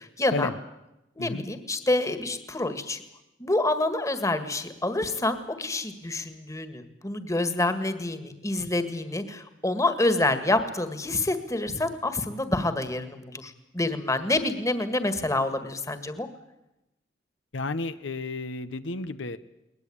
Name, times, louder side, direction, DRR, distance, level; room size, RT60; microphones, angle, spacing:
voice 1, 0.2-0.5 1.2-3.0 3.4-16.3, left 2 dB, 15° left, 10 dB, 1.8 m, -27 dB
voice 2, 17.5-19.4, left 3 dB, 80° left, 11 dB, 0.9 m, -32 dB
22.0 x 20.0 x 8.7 m, 0.91 s
head